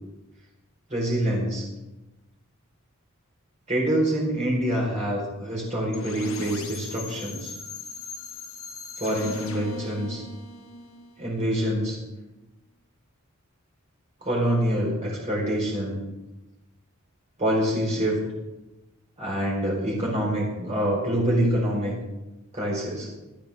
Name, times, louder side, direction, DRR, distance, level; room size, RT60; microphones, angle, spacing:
voice 1, 0.9-1.6 3.7-7.5 9.0-10.2 11.2-12.0 14.2-16.0 17.4-18.2 19.2-21.9 22.5-23.1, right 1 dB, 30° right, -4 dB, 4.4 m, -26 dB
sound 1, 5.9-11.7, left 3 dB, 70° left, 1.5 m, -39 dB
18.5 x 13.0 x 3.6 m, 1.0 s
head